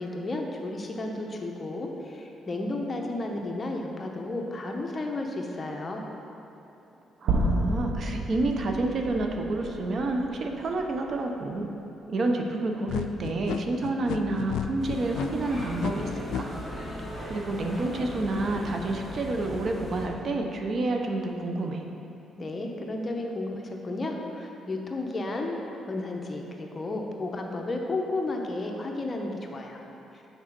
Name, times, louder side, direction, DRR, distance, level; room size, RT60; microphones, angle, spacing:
voice 1, 0.0-6.0 22.4-25.6 25.9-29.8, left 2 dB, 30° left, 1 dB, 0.9 m, -33 dB
voice 2, 7.2-11.7 12.1-16.5 17.2-21.9, right 2 dB, 50° right, 3 dB, 0.7 m, -29 dB
sound 1, 7.3-11.5, right 2 dB, 85° right, 0.8 m, -31 dB
sound 2, 12.9-16.4, left 8 dB, 80° left, 0.3 m, -32 dB
sound 3, 14.8-20.1, left 1 dB, ahead, 1.6 m, -38 dB
6.4 x 4.8 x 5.9 m, 2.9 s
cardioid pair, 90°, 0 cm